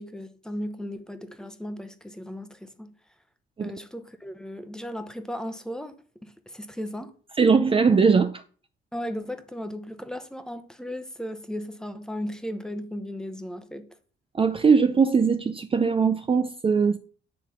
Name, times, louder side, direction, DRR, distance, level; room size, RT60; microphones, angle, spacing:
voice 1, 0.0-2.9 3.6-5.9 6.2-7.1 8.9-13.9, equal, 5° left, 1.0 m, -36 dB
voice 2, 7.4-8.4 14.3-17.0, right 5 dB, 25° right, 0.5 m, -20 dB
9.4 x 3.4 x 5.7 m
cardioid pair, 90°, 20 cm